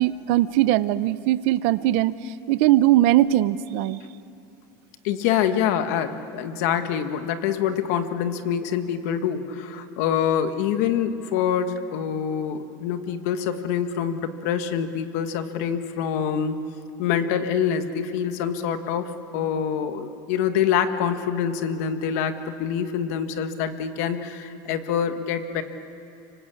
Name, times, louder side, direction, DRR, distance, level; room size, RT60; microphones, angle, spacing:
voice 1, 0.0-2.1 2.5-4.0, right 14 dB, 50° right, 15 dB, 0.7 m, -20 dB
voice 2, 5.0-16.6 17.0-25.6, left 8 dB, 55° left, 8 dB, 1.6 m, -25 dB
25.5 x 25.0 x 8.6 m, 2.7 s
supercardioid pair, 180°, 10 cm